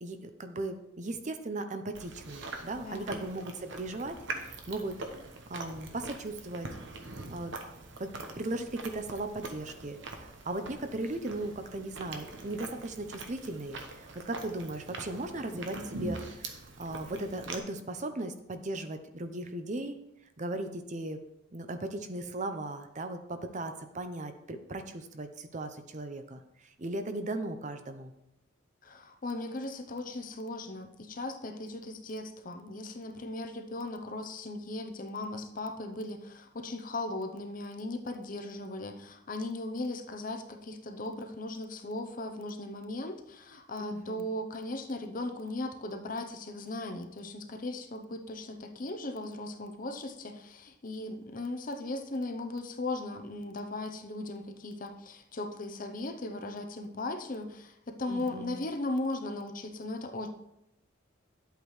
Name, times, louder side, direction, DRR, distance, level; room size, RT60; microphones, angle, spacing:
voice 1, 0.0-5.0 5.5-6.7 7.3-7.5 8.0-20.0 20.4-21.2 21.5-28.1 43.8-44.3 58.1-58.7, right 2 dB, 35° right, 8 dB, 0.7 m, -37 dB
Chewing mastication, 2.0-17.6, right 2 dB, 60° right, 1.1 m, -43 dB
voice 2, 2.8-3.2 28.8-60.3, left 2 dB, 40° left, 6 dB, 0.7 m, -37 dB
10.5 x 8.1 x 3.2 m, 0.83 s
head